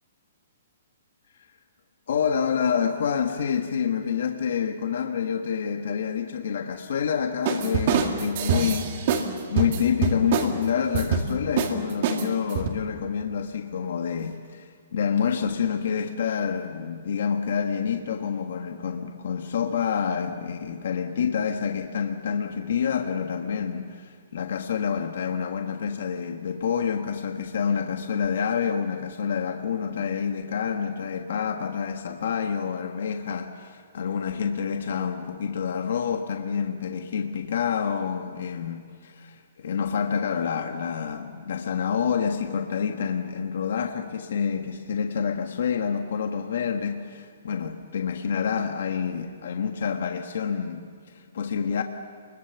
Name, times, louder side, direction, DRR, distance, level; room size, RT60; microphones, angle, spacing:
voice 1, 2.1-51.8, left 7 dB, 60° left, 1.5 m, -28 dB
sound 1, 7.4-9.3 9.6-10.5 10.9-11.3 11.6-11.7 12.0-12.7, right 7 dB, 35° right, 2.1 m, -24 dB
28.0 x 22.0 x 7.0 m
hypercardioid pair, 175°, 0 cm